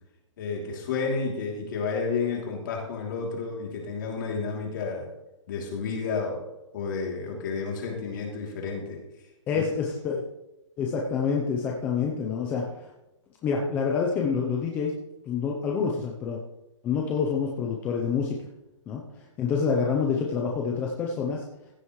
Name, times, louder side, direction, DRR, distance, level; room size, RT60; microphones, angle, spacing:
voice 1, 0.4-5.1 5.5-6.4 6.7-9.0 9.5-9.6, left 4 dB, 40° left, -1 dB, 3.0 m, -31 dB
voice 2, 9.5-10.2 10.8-12.9 13.4-14.9 15.3-16.4 16.8-18.4 18.9-21.4, left 5 dB, 10° left, -1 dB, 0.7 m, -27 dB
15.5 x 9.2 x 3.2 m, 0.95 s
hypercardioid pair, 165°, 16 cm